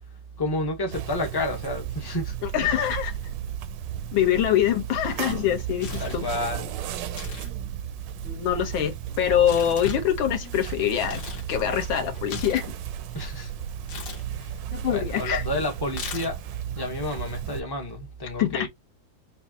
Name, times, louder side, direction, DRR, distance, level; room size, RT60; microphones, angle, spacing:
voice 1, 0.4-2.4 2.6-2.8 6.0-6.7 13.1-13.5 14.3-14.5 14.9-16.4 16.7-18.7, left 1 dB, 35° left, 0.4 m, -30 dB
sound 1, 0.9-17.6, right 10 dB, 75° right, 1.2 m, -34 dB
voice 2, 2.4-3.1 4.1-6.2 8.2-11.2 11.5-12.7 14.7-15.4 18.4-18.7, left 10 dB, 85° left, 1.7 m, -24 dB
Tearing, 5.4-6.3 7.0-7.5 7.8-11.5 11.8-13.3 13.8-14.2 15.9-16.6, left 5 dB, 65° left, 1.5 m, -38 dB
5.3 x 2.4 x 2.7 m
omnidirectional pair, 2.1 m